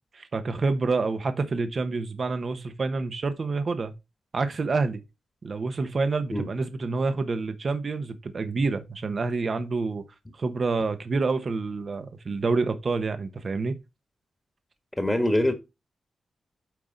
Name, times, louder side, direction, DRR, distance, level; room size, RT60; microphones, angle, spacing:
voice 1, 0.1-3.9 4.3-5.0 5.4-10.0 10.3-13.8, right 3 dB, 55° right, 1.1 m, -28 dB
voice 2, 15.0-15.5, left 1 dB, 20° left, 1.5 m, -23 dB
9.3 x 3.7 x 3.9 m
cardioid pair, 50°, 0 cm